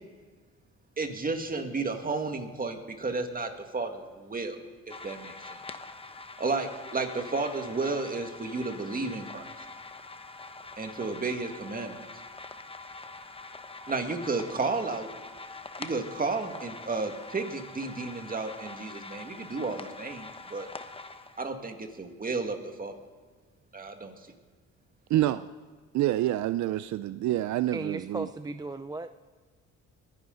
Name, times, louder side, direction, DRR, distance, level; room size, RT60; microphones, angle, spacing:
voice 1, 1.0-5.6 6.4-9.7 10.8-12.0 13.9-15.1 15.8-20.7 21.4-22.9 23.7-24.2, right 3 dB, 30° right, 5 dB, 2.0 m, -32 dB
sound 1, 4.9-21.5, left 3 dB, 20° left, 0.9 m, -44 dB
voice 2, 25.1-25.5 25.9-28.3, right 14 dB, 70° right, 14 dB, 0.5 m, -27 dB
voice 3, 27.7-29.1, right 3 dB, 15° right, 11 dB, 0.4 m, -36 dB
23.0 x 11.0 x 3.9 m, 1.5 s
cardioid pair, 90°, 30 cm